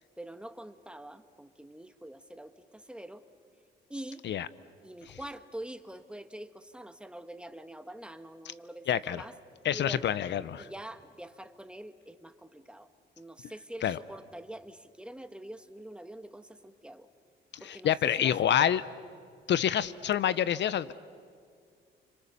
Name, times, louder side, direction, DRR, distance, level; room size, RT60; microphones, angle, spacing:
voice 1, 0.2-3.2 3.9-4.3 4.8-9.3 9.7-10.1 10.6-12.9 13.2-17.1 17.6-18.8, right 1 dB, 5° right, 9 dB, 1.4 m, -45 dB
voice 2, 8.9-9.2 9.6-10.7 13.8-14.0 17.5-18.8 19.5-20.9, left 10 dB, 65° left, 17 dB, 0.7 m, -27 dB
29.0 x 26.0 x 6.9 m, 2.3 s
cardioid pair, 90°, 20 cm